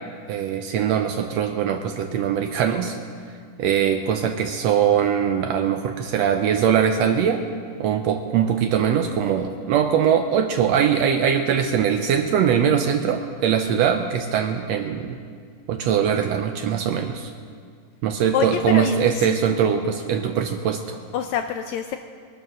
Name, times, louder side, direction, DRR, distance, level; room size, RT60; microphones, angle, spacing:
voice 1, 0.3-3.0 3.6-7.4 7.8-15.2 15.7-17.3 18.0-21.0, right 8 dB, 85° right, 6 dB, 1.5 m, -21 dB
voice 2, 18.3-19.3 21.1-22.0, left 9 dB, 80° left, 7 dB, 1.6 m, -26 dB
21.0 x 9.2 x 6.4 m, 2.1 s
omnidirectional pair, 3.7 m